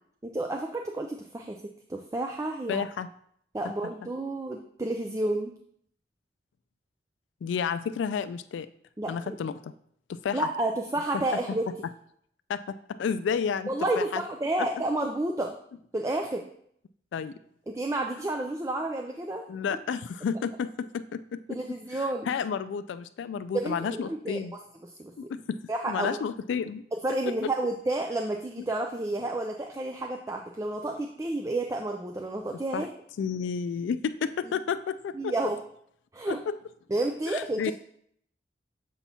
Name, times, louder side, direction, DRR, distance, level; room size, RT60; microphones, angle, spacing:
voice 1, 0.2-2.8 3.5-5.5 9.0-9.4 10.3-11.6 13.7-15.5 15.9-16.4 17.7-19.4 21.5-22.3 23.5-24.4 25.0-25.1 25.7-26.2 27.0-32.9 35.1-35.6 36.1-36.4 36.9-37.7, right 2 dB, 15° right, 3 dB, 0.4 m, -30 dB
voice 2, 2.7-3.1 7.4-8.7 9.1-9.7 10.1-10.5 11.1-11.2 12.5-13.7 14.0-14.2 17.1-17.3 19.5-21.6 21.9-24.5 25.2-25.6 25.9-26.8 27.3-27.4 32.5-32.9 33.2-35.5 36.3-36.6 37.3-37.7, left 6 dB, 85° left, 11 dB, 0.3 m, -31 dB
7.0 x 2.9 x 5.4 m, 0.67 s
head